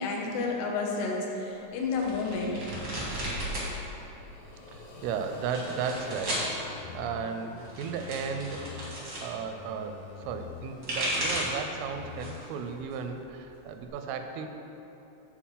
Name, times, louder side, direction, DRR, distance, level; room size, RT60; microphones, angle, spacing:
voice 1, 0.0-2.6, left 4 dB, 75° left, 0 dB, 2.6 m, -30 dB
sound 1, 1.9-3.7 4.0-4.7 5.3-6.5 7.5-9.3 10.5-11.6 12.1-12.5 12.9-13.9, right 1 dB, 70° right, 1.0 m, -34 dB
sound 2, 3.9-7.9, left 2 dB, 60° left, 2.8 m, -46 dB
voice 2, 4.7-8.6 9.2-14.5, right 6 dB, 85° right, 6 dB, 3.1 m, -35 dB
sound 3, 6.0-9.0 9.4-12.4 12.8-12.9, left 7 dB, 90° left, 3.4 m, -46 dB
9.0 x 4.3 x 7.4 m, 3.0 s
omnidirectional pair, 5.7 m